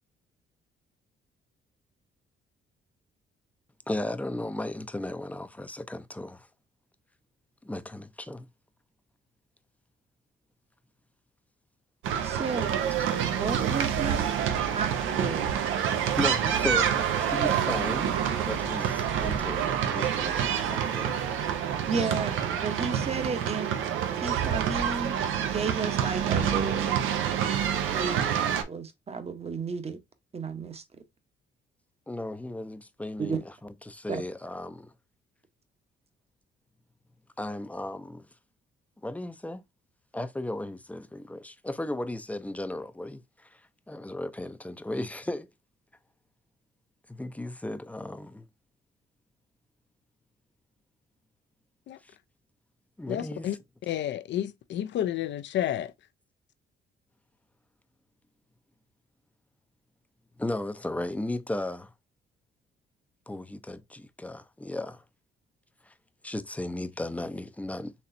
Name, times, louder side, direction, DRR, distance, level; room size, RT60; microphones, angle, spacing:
voice 1, 3.9-6.5 7.6-8.5 16.2-18.1 18.4-21.2 32.1-34.9 37.4-38.3 39.0-39.6 40.1-43.6 43.9-45.5 47.1-48.5 52.1-52.2 53.0-53.5 60.4-61.9 63.3-65.0 65.9-66.0 66.2-67.9, left 1 dB, 5° left, 0.5 m, -35 dB
sound 1, 12.0-28.6, right 8 dB, 85° right, 0.7 m, -27 dB
voice 2, 12.2-12.7 13.3-14.3 14.7-15.5 21.9-23.8 24.2-27.0 27.9-30.0 30.3-30.8 33.2-33.4 34.1-34.2, right 5 dB, 30° right, 0.8 m, -33 dB
voice 3, 53.1-53.6 53.8-55.9, left 11 dB, 65° left, 0.5 m, -30 dB
4.2 x 3.1 x 2.5 m
cardioid pair, 90°, 20 cm